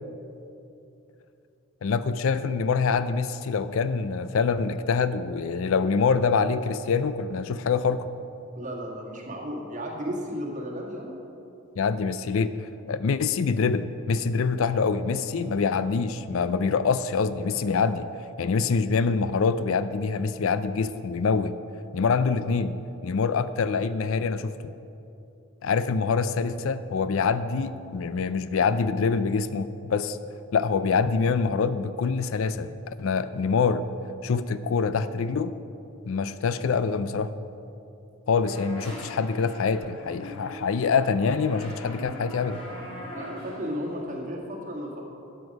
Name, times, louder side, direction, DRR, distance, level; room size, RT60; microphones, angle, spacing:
voice 1, 1.8-8.1 11.8-18.1 18.4-21.5 21.9-22.8 23.0-24.7 25.6-30.2 30.5-33.9 34.2-35.5 36.0-37.3 38.3-42.6, left 5 dB, 65° left, 13 dB, 0.4 m, -25 dB
voice 2, 8.6-11.1 43.1-45.0, equal, 35° right, -2 dB, 1.8 m, -34 dB
sound 1, 38.4-44.2, left 1 dB, 25° left, 2.2 m, -41 dB
12.5 x 8.0 x 5.3 m, 2.7 s
head